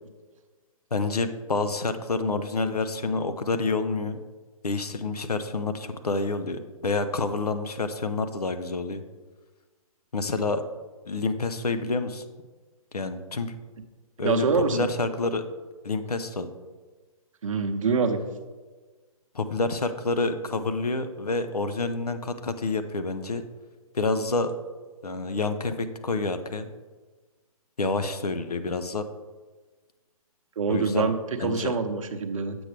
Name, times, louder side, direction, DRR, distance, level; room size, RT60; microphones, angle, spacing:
voice 1, 0.9-4.2 4.6-9.0 10.1-10.6 11.1-12.2 12.9-13.6 14.2-14.5 14.7-15.4 15.8-16.5 19.3-23.4 23.9-24.5 25.0-26.7 27.8-29.0 30.7-31.7, left 3 dB, 90° left, 10 dB, 0.7 m, -28 dB
voice 2, 14.2-14.8 17.4-18.2 27.8-28.0 30.6-32.6, right 5 dB, 60° right, 7 dB, 0.8 m, -25 dB
7.9 x 6.1 x 3.3 m, 1.3 s
figure-of-eight pair, 135°, 19 cm